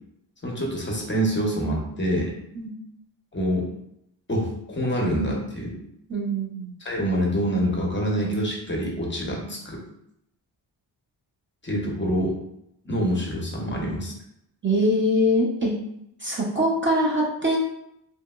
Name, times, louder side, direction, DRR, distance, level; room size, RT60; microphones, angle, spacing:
voice 1, 0.4-2.3 3.3-3.7 4.3-5.8 6.8-9.8 11.6-12.3 12.8-14.1, equal, 25° left, -1 dB, 0.6 m, -26 dB
voice 2, 6.1-6.7 14.6-15.7 16.2-17.6, equal, 30° right, -3 dB, 0.5 m, -23 dB
2.8 x 2.8 x 2.2 m, 0.77 s
wide cardioid pair, 120°, 43 cm